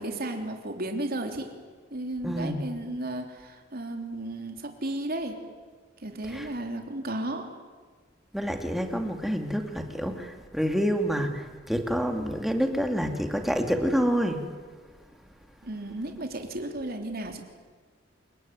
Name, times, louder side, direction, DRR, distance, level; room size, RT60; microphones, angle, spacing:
voice 1, 0.0-1.5 1.9-5.4 6.0-7.5 15.6-17.4, right 1 dB, 50° right, 4 dB, 3.4 m, -34 dB
voice 2, 2.2-2.6 6.3-6.5 8.3-14.4, equal, ahead, 4 dB, 2.5 m, -28 dB
29.0 x 20.0 x 9.4 m, 1.5 s
head